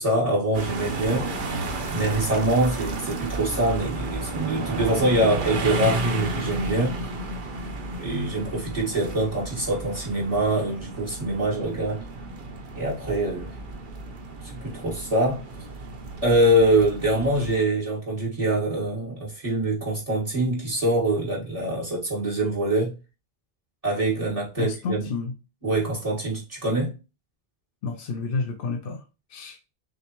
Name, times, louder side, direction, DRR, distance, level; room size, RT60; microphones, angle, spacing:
voice 1, 0.0-1.4 1.9-7.0 8.0-12.0 12.8-13.6 14.4-15.4 16.2-22.9 23.8-25.1 25.6-26.9, right 1 dB, 35° right, 1.7 m, -24 dB
sound 1, 0.5-17.6, right 2 dB, 55° right, 0.9 m, -32 dB
voice 2, 24.6-25.3 27.8-29.0 29.3-29.6, left 4 dB, 65° left, 0.8 m, -30 dB
6.5 x 2.2 x 2.9 m
omnidirectional pair, 1.0 m